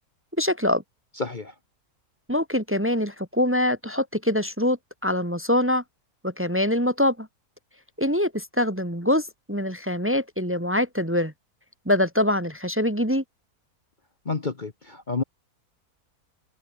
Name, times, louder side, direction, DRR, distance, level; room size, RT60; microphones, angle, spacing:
voice 1, 0.4-0.8 2.3-5.8 6.2-7.3 8.0-11.3 11.8-13.2, left 1 dB, 10° right, 1.6 m, -24 dB
voice 2, 1.2-1.5 14.2-15.2, left 4 dB, 35° left, 1.3 m, -29 dB
omnidirectional pair, 1.6 m